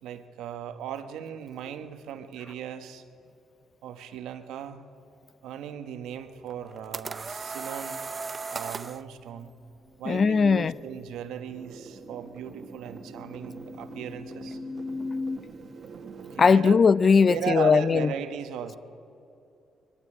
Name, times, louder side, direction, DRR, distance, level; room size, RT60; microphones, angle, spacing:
voice 1, 0.0-3.0 3.8-4.9 5.4-8.0 8.5-9.6 10.0-14.6 16.2-16.8 17.2-18.7, right 9 dB, 85° right, 1.2 m, -37 dB
sound 1, 6.5-9.0, right 4 dB, 30° right, 0.5 m, -36 dB
sound 2, 8.2-8.3 8.6-15.4, left 3 dB, 25° left, 1.3 m, -40 dB
voice 2, 10.1-10.7 16.4-18.1, left 5 dB, 40° left, 0.5 m, -19 dB
sound 3, 11.3-16.4, right 5 dB, 55° right, 1.5 m, -46 dB
21.0 x 14.5 x 8.8 m
cardioid pair, 90°, 0 cm